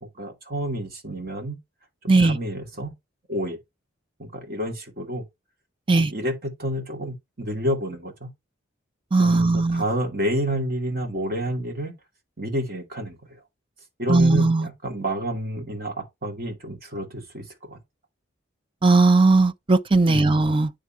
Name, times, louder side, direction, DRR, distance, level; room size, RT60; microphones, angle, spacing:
voice 1, 0.0-1.6 2.0-2.9 3.3-3.6 4.2-5.2 5.9-8.3 9.2-11.9 12.4-13.4 14.0-17.8 20.1-20.3, equal, 50° right, 2.5 m, -29 dB
voice 2, 9.1-9.8 14.1-14.7 18.8-20.7, right 3 dB, 25° right, 0.6 m, -18 dB
9.7 x 3.7 x 4.4 m
head